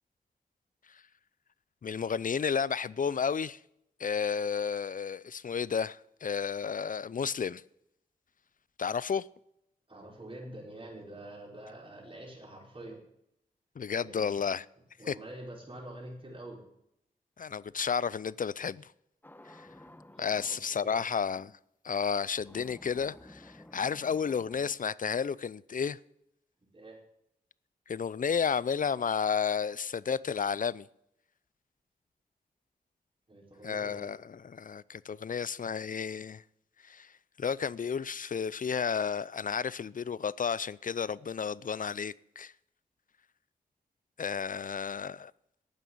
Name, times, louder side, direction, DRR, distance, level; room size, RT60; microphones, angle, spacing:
voice 1, 1.8-3.6 4.0-7.6 8.8-9.3 13.8-14.7 15.1-15.2 17.4-18.9 19.4-19.7 20.2-21.6 21.8-26.0 27.9-30.9 33.6-36.4 36.8-37.1 37.4-42.5 44.2-45.3, left 6 dB, 55° left, 0.5 m, -32 dB
voice 2, 9.9-13.0 14.0-14.4 15.0-16.6 20.1-21.0 26.7-27.0 33.3-34.1, right 1 dB, 35° right, 4.7 m, -46 dB
sound 1, 19.2-20.7 22.4-24.7, left 1 dB, 10° left, 1.0 m, -53 dB
12.0 x 9.1 x 8.5 m
wide cardioid pair, 75°, 16 cm